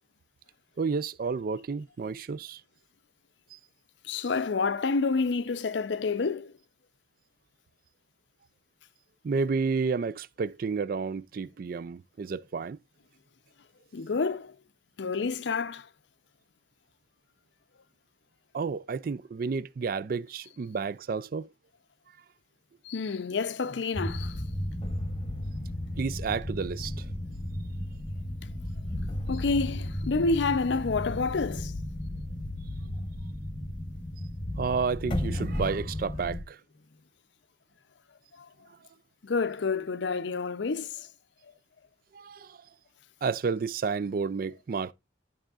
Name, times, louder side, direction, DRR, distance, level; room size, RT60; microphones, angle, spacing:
voice 1, 0.8-2.6 3.5-3.6 9.2-12.8 18.5-21.5 26.0-27.0 34.6-36.6 42.1-42.6 43.2-44.9, right 5 dB, 50° right, 0.3 m, -31 dB
voice 2, 4.0-6.5 13.9-14.5 15.0-15.9 22.8-24.4 28.4-28.5 29.3-31.7 39.2-41.1, left 4 dB, 70° left, 0.5 m, -29 dB
sound 1, 23.9-36.4, left 1 dB, 25° left, 0.9 m, -34 dB
11.5 x 6.2 x 2.4 m
head